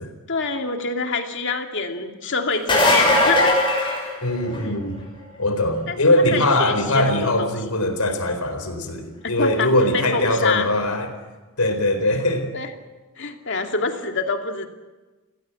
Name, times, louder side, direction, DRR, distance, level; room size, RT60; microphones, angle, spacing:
voice 1, 0.3-3.6 4.0-4.2 4.6-4.8 5.9-6.0 6.3-7.5 9.2-10.7 12.5-12.7 13.2-14.7, left 4 dB, 55° left, 4 dB, 2.5 m, -26 dB
sound 1, 2.5-4.8 10.3-10.4 12.2-12.3, left 1 dB, 20° left, 6.8 m, -18 dB
voice 2, 4.2-5.0 5.4-11.1 11.6-12.5, left 1 dB, 80° left, 7 dB, 4.3 m, -21 dB
29.5 x 16.5 x 8.4 m, 1.2 s
head